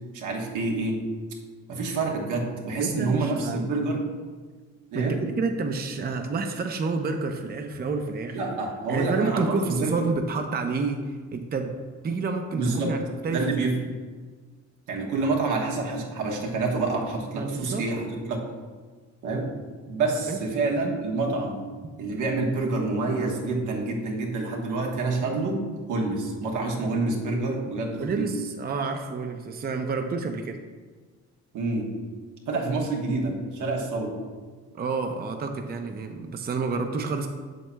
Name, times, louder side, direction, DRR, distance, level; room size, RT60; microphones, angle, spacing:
voice 1, 0.1-1.0 1.7-4.1 4.9-5.2 8.3-10.0 12.5-13.0 13.3-13.8 14.9-18.4 19.2-19.5 19.9-21.7 22.0-25.6 25.9-28.3 31.5-31.9 32.5-34.2, right 3 dB, 80° right, -1 dB, 1.2 m, -27 dB
voice 2, 2.8-3.7 4.9-8.4 8.9-11.7 12.0-13.5 17.3-17.8 20.3-20.4 28.0-30.6 34.8-37.3, right 4 dB, 30° right, 5 dB, 0.6 m, -29 dB
7.7 x 6.7 x 2.2 m, 1.4 s
cardioid pair, 90°, 30 cm